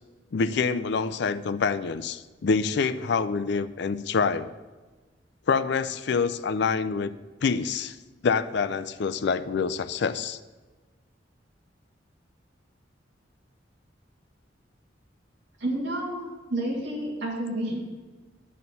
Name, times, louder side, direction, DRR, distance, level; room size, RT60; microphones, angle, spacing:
voice 1, 0.3-4.5 5.5-7.1 7.4-8.0 8.2-10.4, left 5 dB, 65° left, 13 dB, 0.4 m, -26 dB
voice 2, 15.6-16.2 16.5-17.8, right 1 dB, 70° right, -4 dB, 2.3 m, -29 dB
11.0 x 4.3 x 6.8 m, 1.3 s
head